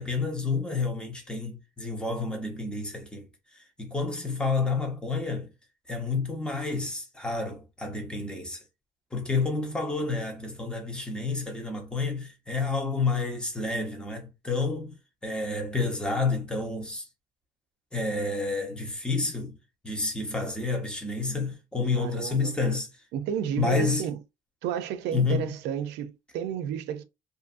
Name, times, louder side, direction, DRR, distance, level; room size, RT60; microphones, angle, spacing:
voice 1, 0.0-3.3 3.5-5.5 5.9-8.6 9.1-15.0 15.2-17.0 17.9-19.6 19.8-22.9 23.6-24.0 25.1-25.5, left 3 dB, 5° left, 0.9 m, -29 dB
voice 2, 21.9-22.6 23.1-24.2 24.6-27.0, right 9 dB, 85° right, 0.4 m, -32 dB
2.6 x 2.5 x 2.5 m
cardioid pair, 110°, 17 cm